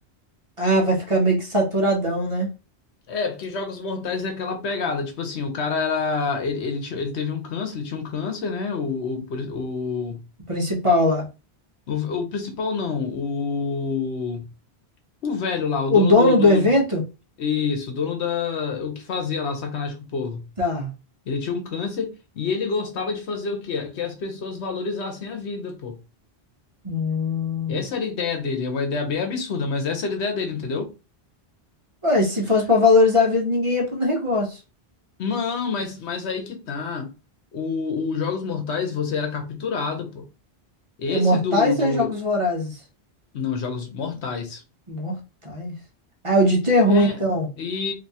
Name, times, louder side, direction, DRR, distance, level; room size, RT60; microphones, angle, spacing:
voice 1, 0.6-2.5 10.5-11.3 15.9-17.0 20.6-20.9 26.8-27.8 32.0-34.6 41.1-42.8 44.9-45.2 45.4-45.7 46.2-47.5, left 1 dB, 30° right, 0.8 m, -20 dB
voice 2, 3.1-10.2 11.9-14.5 15.2-16.7 17.4-20.4 21.3-26.0 27.7-30.9 35.2-37.1 37.5-40.3 41.0-42.1 43.3-44.6 46.9-47.2 47.6-47.9, left 5 dB, 80° left, 1.1 m, -27 dB
3.4 x 2.7 x 2.7 m
omnidirectional pair, 1.1 m